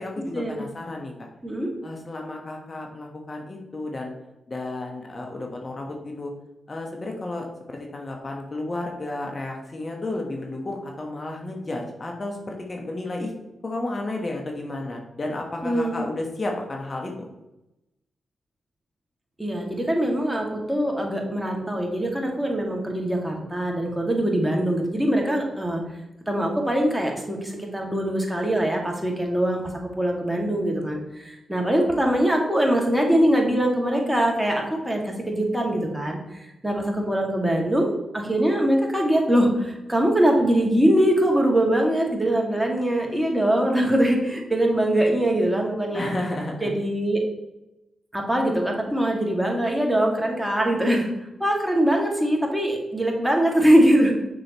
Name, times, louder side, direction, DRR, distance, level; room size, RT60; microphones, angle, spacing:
voice 1, 0.0-1.3 1.8-4.1 4.5-6.3 6.7-13.3 13.6-17.3 45.9-46.7, left 2 dB, 45° left, 1 dB, 1.2 m, -32 dB
voice 2, 15.6-16.0 19.4-25.8 26.3-36.2 36.6-37.9 38.1-46.1 46.6-47.2 48.1-51.1 51.4-54.1, right 1 dB, 10° right, 0 dB, 2.1 m, -22 dB
6.7 x 6.0 x 3.0 m, 0.92 s
supercardioid pair, 40°, 0 cm